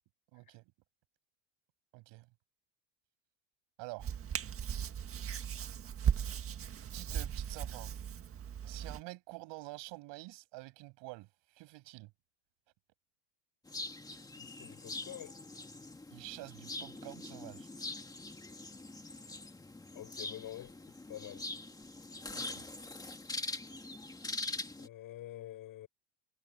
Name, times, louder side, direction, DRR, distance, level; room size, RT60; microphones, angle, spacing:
voice 1, 0.3-0.7 1.9-2.3 3.8-4.1 6.9-7.9 8.6-12.1 16.1-17.7 22.3-22.7, right 23 dB, 65° right, 7.7 m, -48 dB
Hands, 4.0-9.0, right 8 dB, 30° right, 1.7 m, -37 dB
sound 1, 13.7-24.9, left 2 dB, 10° left, 2.1 m, -43 dB
voice 2, 14.4-15.4 19.9-20.8 21.1-21.5 24.8-25.9, left 13 dB, 45° left, 7.4 m, -47 dB
cardioid pair, 150°, 47 cm